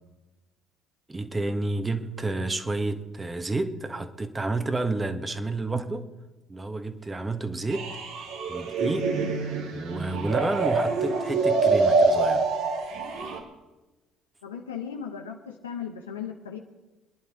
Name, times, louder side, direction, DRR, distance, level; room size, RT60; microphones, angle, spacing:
voice 1, 1.1-6.1 6.5-7.9 8.5-9.1 9.7-12.5, right 2 dB, 20° right, 1.6 m, -30 dB
sound 1, 7.7-13.4, right 3 dB, 70° right, 2.5 m, -25 dB
voice 2, 14.4-16.6, left 7 dB, 85° left, 0.9 m, -36 dB
26.0 x 11.0 x 3.8 m
hypercardioid pair, 55°, 0 cm